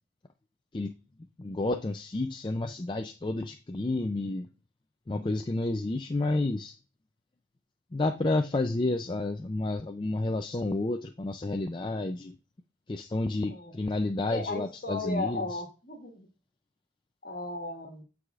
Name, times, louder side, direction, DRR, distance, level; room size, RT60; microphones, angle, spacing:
voice 1, 1.4-4.5 5.1-6.7 7.9-12.3 12.9-15.4, left 2 dB, 25° left, 5 dB, 0.4 m, -30 dB
voice 2, 13.4-13.8 14.3-16.3 17.2-18.0, left 2 dB, 45° left, 3 dB, 1.7 m, -36 dB
13.5 x 4.8 x 2.4 m, 0.33 s
head